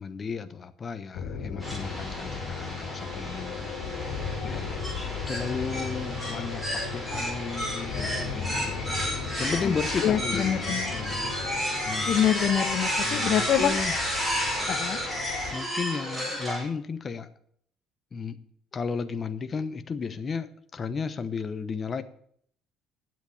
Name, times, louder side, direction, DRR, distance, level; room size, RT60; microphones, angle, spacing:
voice 1, 0.0-3.7 4.4-4.9 5.3-8.8 9.1-11.3 11.8-12.2 13.0-13.9 15.5-17.3 18.1-18.4 18.7-22.0, left 5 dB, 30° left, 10 dB, 0.9 m, -34 dB
sound 1, 1.1-15.5, left 6 dB, 75° left, 2.4 m, -36 dB
sound 2, 1.6-16.6, equal, 5° right, 5.0 m, -32 dB
voice 2, 10.0-10.9 12.0-13.8 14.7-15.0, left 9 dB, 50° left, 4 dB, 1.1 m, -25 dB
9.3 x 7.9 x 8.5 m, 0.64 s
cardioid pair, 145°, 0 cm